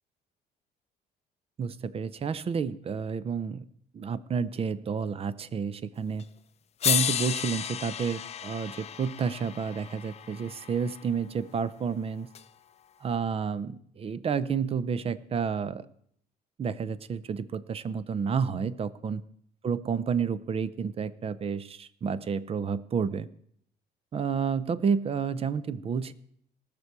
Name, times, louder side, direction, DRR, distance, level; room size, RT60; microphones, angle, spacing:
voice 1, 1.6-3.7 3.9-6.2 6.8-12.3 13.0-15.9 16.6-19.2 19.6-23.3 24.1-26.1, right 6 dB, 35° right, 17 dB, 0.6 m, -30 dB
sound 1, 6.2-6.3 6.8-11.0 12.3-12.4, left 9 dB, 40° left, 0.5 m, -32 dB
19.0 x 6.9 x 4.7 m, 0.67 s
cardioid pair, 110°, 17 cm